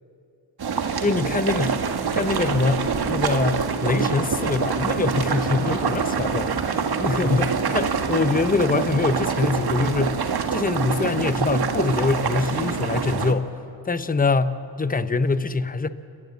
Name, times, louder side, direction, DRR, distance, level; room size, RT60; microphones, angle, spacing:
sound 1, 0.6-13.3, right 6 dB, 55° right, 1.8 m, -25 dB
voice 1, 1.0-1.9 2.1-13.5 13.8-15.9, left 4 dB, 20° left, 13 dB, 1.0 m, -24 dB
29.5 x 13.5 x 7.5 m, 2.7 s
supercardioid pair, 45°, 45 cm